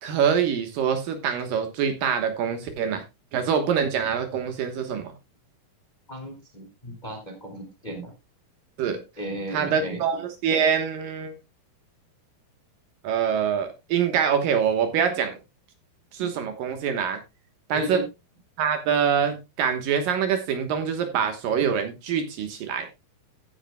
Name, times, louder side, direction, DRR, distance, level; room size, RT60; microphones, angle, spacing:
voice 1, 0.0-3.0 3.3-5.1 8.8-9.0 9.5-11.4 13.0-15.4 16.1-17.2 17.7-18.0 18.6-22.9, right 7 dB, 65° right, 7 dB, 2.8 m, -25 dB
voice 2, 6.1-8.1 9.2-10.0 17.7-18.0, right 1 dB, 15° left, 3 dB, 1.9 m, -35 dB
14.5 x 9.9 x 2.3 m, 0.23 s
omnidirectional pair, 4.6 m